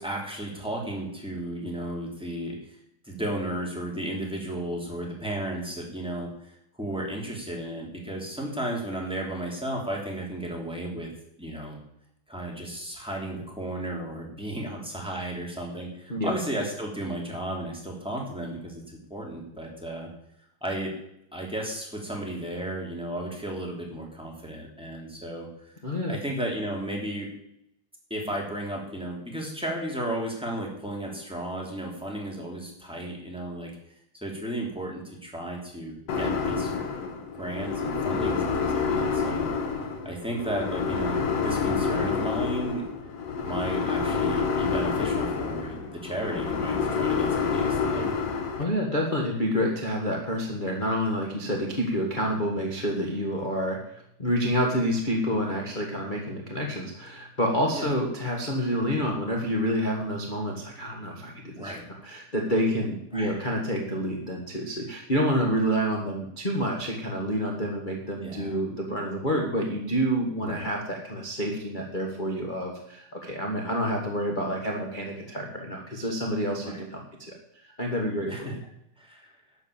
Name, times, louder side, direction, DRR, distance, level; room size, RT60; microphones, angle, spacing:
voice 1, 0.0-2.5 3.0-11.1 11.4-11.8 12.3-20.1 20.6-20.9 21.3-25.7 26.1-27.3 28.1-33.7 34.2-36.7 37.4-39.5 40.0-42.8 43.5-48.1 57.7-57.9 61.5-62.1 63.1-63.4 68.2-68.6 70.4-70.6 76.5-76.8 78.3-78.5 79.0-79.3, right 1 dB, ahead, -2 dB, 2.8 m, -34 dB
sound 1, 36.1-48.6, left 5 dB, 60° left, 2.1 m, -28 dB
voice 2, 48.6-77.3 77.6-78.6, equal, 25° left, -1 dB, 1.2 m, -28 dB
12.0 x 7.2 x 7.3 m, 0.77 s
omnidirectional pair, 3.3 m